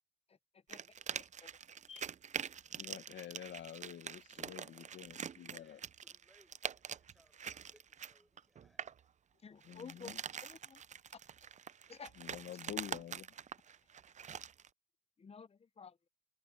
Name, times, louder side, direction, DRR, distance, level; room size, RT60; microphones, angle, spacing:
sound 1, 0.7-9.0 9.6-14.7, right 8 dB, 35° right, 0.5 m, -45 dB
voice 1, 1.1-1.5 1.9-2.0 9.4-10.1 10.4-10.8 11.9-12.1 15.2-15.9, left 5 dB, 30° left, 0.9 m, -52 dB
voice 2, 2.8-5.8 9.6-10.2 12.2-13.2, left 10 dB, 70° left, 1.6 m, -48 dB
voice 3, 5.4-8.8, equal, ahead, 6.9 m, -71 dB
cardioid pair, 90°, 20 cm